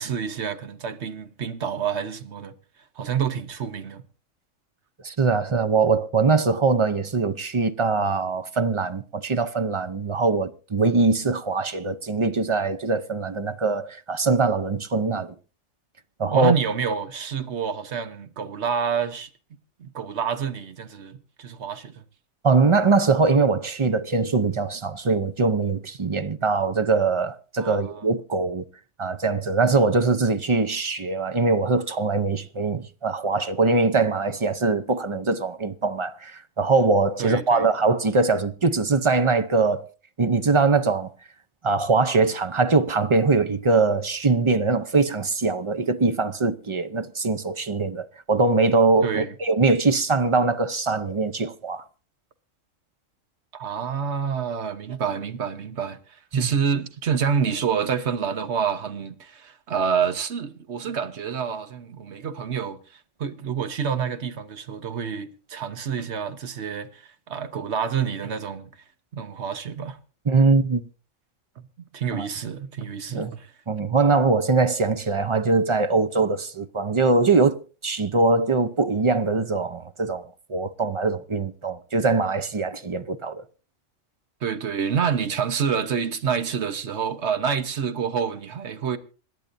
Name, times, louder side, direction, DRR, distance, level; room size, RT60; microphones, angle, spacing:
voice 1, 0.0-2.5 2.9-4.0 16.3-19.3 19.8-22.0 27.6-28.0 37.2-37.7 49.0-49.3 53.5-68.8 69.1-70.0 71.6-71.7 71.9-73.5 84.4-89.0, right 7 dB, 60° right, 1.3 m, -28 dB
voice 2, 5.0-15.3 16.2-16.5 22.4-28.6 29.0-39.9 40.2-41.1 41.6-51.8 56.3-56.5 70.3-70.9 72.1-72.3 73.1-73.3 73.7-83.4, right 3 dB, 35° right, 0.5 m, -22 dB
26.5 x 11.0 x 2.6 m
omnidirectional pair, 1.4 m